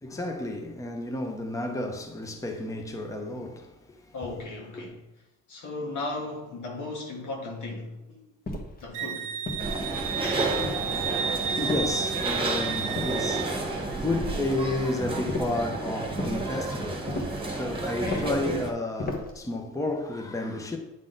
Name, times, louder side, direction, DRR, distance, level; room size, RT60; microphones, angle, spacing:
voice 1, 0.0-4.1 4.7-4.9 11.2-20.8, left 2 dB, 10° left, 0.8 m, -32 dB
voice 2, 4.1-5.0 5.5-8.3 8.8-9.3 18.0-18.5, left 2 dB, 75° left, 1.7 m, -36 dB
sound 1, 8.5-8.9 9.5-10.1 10.6-11.1 11.7-12.3 13.0-13.6 15.3-15.7 16.2-16.5 17.1-17.5 18.0-18.4 19.0-19.4, left 2 dB, 30° left, 1.2 m, -35 dB
Wind instrument woodwind instrument, 8.9-13.5, right 8 dB, 80° right, 0.6 m, -32 dB
sound 2, 9.6-18.7, right 2 dB, 15° right, 1.4 m, -31 dB
8.9 x 3.7 x 3.9 m
cardioid pair, 90°, 30 cm